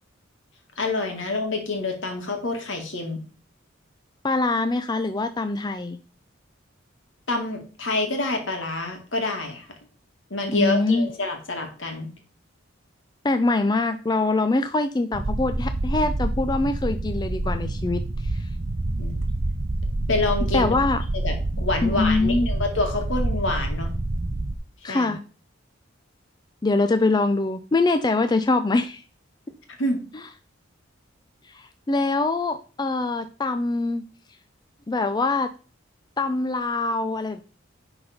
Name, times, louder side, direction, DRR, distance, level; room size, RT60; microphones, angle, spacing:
voice 1, 0.8-3.2 7.3-9.7 10.3-12.1 19.0-19.2 20.1-20.7 21.1-23.9 24.9-25.2 29.8-30.0, left 2 dB, 70° left, 4 dB, 2.1 m, -27 dB
voice 2, 4.2-6.0 10.5-11.1 13.2-18.5 20.5-21.0 21.8-22.5 24.8-25.2 26.6-29.0 31.5-34.0 34.9-35.5 36.2-37.4, left 3 dB, 20° left, 9 dB, 0.4 m, -23 dB
sound 1, 15.1-24.5, right 2 dB, 35° right, 0.6 m, -27 dB
10.5 x 4.0 x 5.1 m, 0.37 s
head